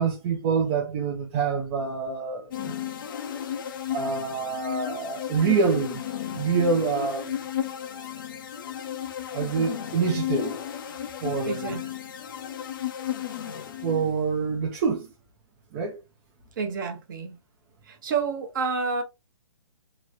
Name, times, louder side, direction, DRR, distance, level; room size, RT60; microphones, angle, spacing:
voice 1, 0.0-2.7 3.9-6.0 6.3-7.4 9.3-10.6 11.2-11.8 13.8-15.1 15.7-16.0, right 5 dB, 25° right, 0.5 m, -26 dB
sound 1, 2.5-14.3, left 10 dB, 40° left, 0.5 m, -34 dB
voice 2, 11.4-11.8 16.6-17.4 17.8-19.0, right 5 dB, 40° right, 1.0 m, -29 dB
3.0 x 3.0 x 2.5 m
figure-of-eight pair, 135°, 17 cm